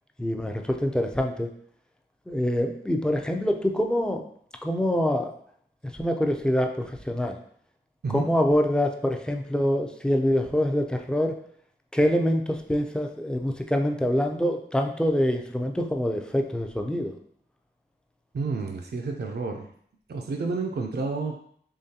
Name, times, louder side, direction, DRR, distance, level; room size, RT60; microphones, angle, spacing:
voice 1, 0.2-1.5 2.3-4.2 4.6-5.3 5.9-7.4 8.1-11.4 11.9-17.1, equal, 5° left, 3 dB, 0.4 m, -25 dB
voice 2, 18.3-19.7 20.1-21.4, right 4 dB, 60° right, 2 dB, 0.4 m, -30 dB
3.7 x 3.1 x 2.8 m, 0.63 s
wide cardioid pair, 65°, 19 cm